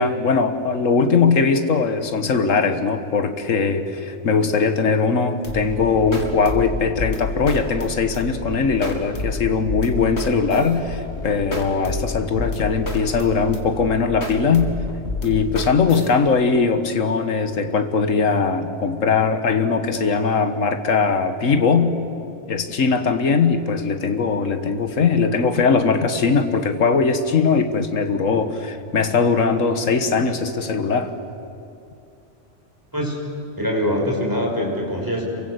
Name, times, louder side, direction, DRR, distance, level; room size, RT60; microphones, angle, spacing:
voice 1, 0.0-14.7 15.2-21.9 22.5-31.1, left 5 dB, 85° left, 8 dB, 1.8 m, -20 dB
sound 1, 5.4-16.1, left 2 dB, 60° left, 3.0 m, -29 dB
voice 2, 33.6-35.2, equal, 15° right, -1 dB, 6.0 m, -23 dB
28.0 x 23.5 x 8.1 m, 2.6 s
omnidirectional pair, 1.3 m